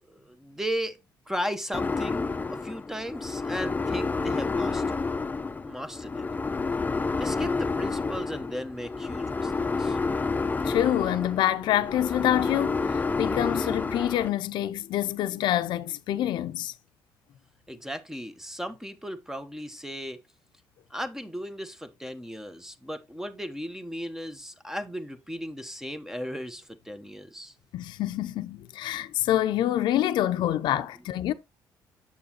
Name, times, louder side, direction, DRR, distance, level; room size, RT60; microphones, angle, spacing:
voice 1, 0.1-1.0 1.3-5.0 5.6-6.3 7.2-10.0 17.7-20.2 20.9-27.5 30.4-30.5, equal, 5° right, 1.0 m, -36 dB
sound 1, 1.7-14.3, left 4 dB, 20° left, 0.6 m, -29 dB
voice 2, 10.6-16.7 27.7-31.3, left 12 dB, 75° left, 0.6 m, -26 dB
7.2 x 6.9 x 3.0 m
supercardioid pair, 70°, 8 cm